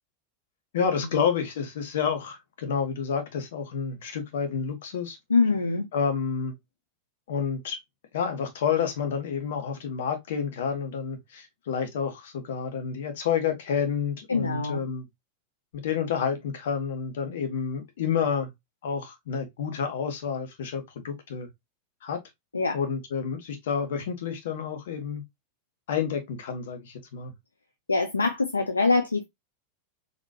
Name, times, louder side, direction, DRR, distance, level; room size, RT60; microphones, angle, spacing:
voice 1, 0.7-5.2 5.9-6.5 7.3-7.8 8.1-15.0 15.7-18.5 18.8-21.5 22.0-22.2 22.7-25.2 25.9-27.3, left 6 dB, 55° left, 1.1 m, -29 dB
voice 2, 5.3-5.9 14.3-14.8 22.5-22.8 27.9-29.2, left 3 dB, 80° left, 0.4 m, -24 dB
4.0 x 2.9 x 2.7 m
figure-of-eight pair, 90°, 0 cm